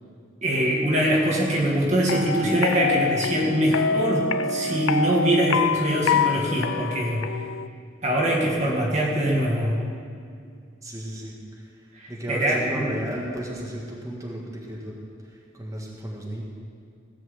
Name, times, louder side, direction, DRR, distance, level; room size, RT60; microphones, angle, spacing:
voice 1, 0.4-7.3 8.0-9.7 11.9-12.9, right 1 dB, 35° right, -2 dB, 1.7 m, -23 dB
sound 1, 2.1-7.7, left 5 dB, 80° left, 0.5 m, -26 dB
voice 2, 10.8-14.9 15.2-16.4, right 1 dB, 15° right, -3 dB, 1.8 m, -34 dB
17.5 x 6.1 x 8.0 m, 2.3 s
head